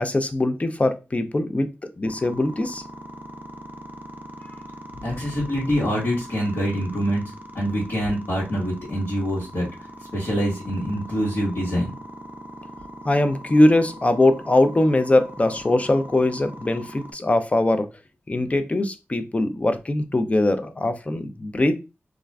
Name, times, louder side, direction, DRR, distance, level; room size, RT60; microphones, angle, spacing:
voice 1, 0.0-1.7 2.0-2.8 13.1-17.9 18.3-21.7, left 1 dB, 30° left, 9 dB, 0.4 m, -21 dB
sound 1, 2.0-17.1, right 1 dB, 45° right, 0.4 m, -41 dB
voice 2, 5.0-9.7 10.1-11.9 18.4-18.5, equal, 65° left, -7 dB, 1.3 m, -25 dB
2.4 x 2.3 x 3.2 m, 0.28 s
wide cardioid pair, 60°, 4 cm